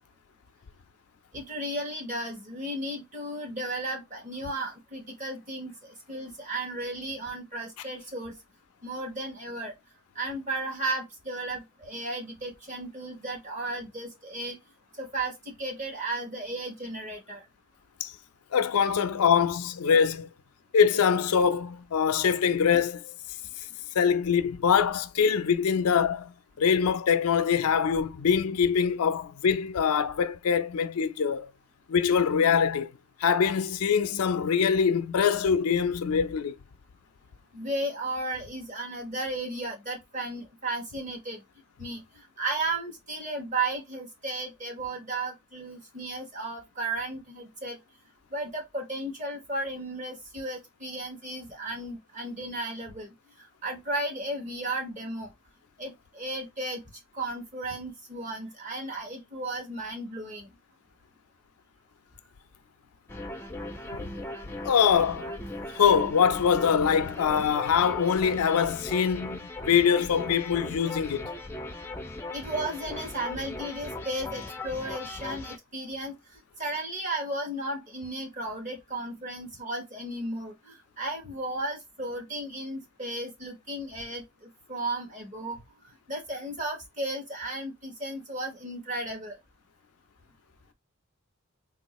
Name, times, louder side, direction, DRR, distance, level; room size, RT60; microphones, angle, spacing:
voice 1, 1.3-8.4 8.8-9.7 10.1-14.6 15.0-17.4 37.5-41.4 41.8-42.0 42.4-47.8 48.3-53.1 53.6-55.3 55.8-56.8 57.1-60.5 72.3-76.2 76.6-85.6 86.1-89.4, right 2 dB, 35° right, 1.1 m, -34 dB
voice 2, 18.5-20.3 20.7-23.1 23.9-26.3 26.6-31.5 31.9-32.9 33.2-36.6 64.6-65.3 65.7-71.3, left 7 dB, 85° left, 0.4 m, -24 dB
sound 1, 63.1-75.6, left 2 dB, 10° left, 0.4 m, -38 dB
3.6 x 2.4 x 3.0 m
head